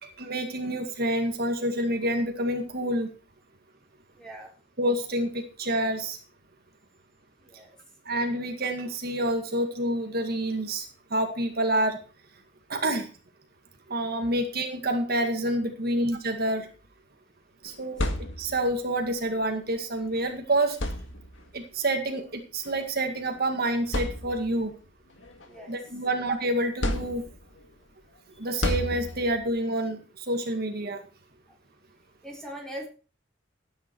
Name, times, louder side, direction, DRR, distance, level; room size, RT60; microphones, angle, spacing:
voice 1, 0.0-3.1 4.8-6.2 8.1-12.0 12.7-13.1 13.9-16.7 17.6-18.0 18.4-20.8 21.5-24.7 25.7-27.2 28.4-31.0, right 1 dB, 50° right, 4 dB, 2.0 m, -28 dB
voice 2, 4.1-4.5 7.4-7.7 17.6-17.7 25.5-25.8 32.2-32.9, right 1 dB, 5° left, 0 dB, 4.0 m, -41 dB
sound 1, 17.7-18.8 20.1-20.2 20.7-21.6 22.7-22.8 23.4-23.5 23.9-24.7 25.2-26.2 26.8-27.6 28.6-29.5, left 1 dB, 70° left, 1.9 m, -31 dB
13.5 x 9.8 x 4.6 m, 0.35 s
head